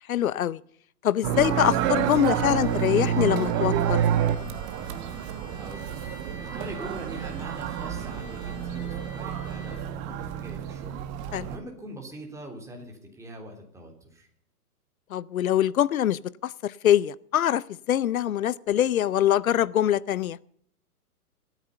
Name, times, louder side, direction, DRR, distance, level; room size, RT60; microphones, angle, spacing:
voice 1, 0.1-0.6 1.0-4.0 11.3-11.5 15.1-20.4, left 11 dB, 65° left, 21 dB, 0.7 m, -24 dB
sound 1, 1.2-11.6, right 9 dB, 25° right, 1.2 m, -28 dB
Trumpet, 1.3-9.9, left 1 dB, 15° left, 3.5 m, -48 dB
voice 2, 5.5-5.9 6.4-11.0 11.4-14.3, right 1 dB, 5° right, 1 dB, 3.4 m, -42 dB
24.5 x 9.3 x 5.6 m, 0.63 s
hypercardioid pair, 130°, 46 cm